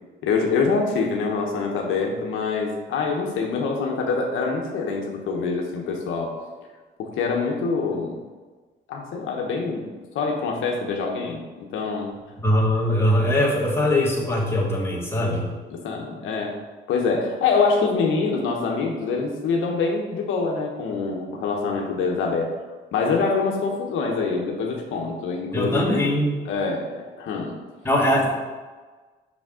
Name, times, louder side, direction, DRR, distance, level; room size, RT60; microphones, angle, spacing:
voice 1, 0.2-6.3 7.0-8.2 8.9-9.9 10.1-12.1 15.7-16.5 16.9-22.5 22.9-26.0 26.5-27.6, left 4 dB, 85° left, 1 dB, 1.0 m, -25 dB
voice 2, 12.4-15.5 25.5-26.3 27.8-28.3, left 1 dB, 10° left, -5 dB, 2.2 m, -21 dB
6.2 x 5.9 x 3.8 m, 1.3 s
cardioid pair, 90°, 20 cm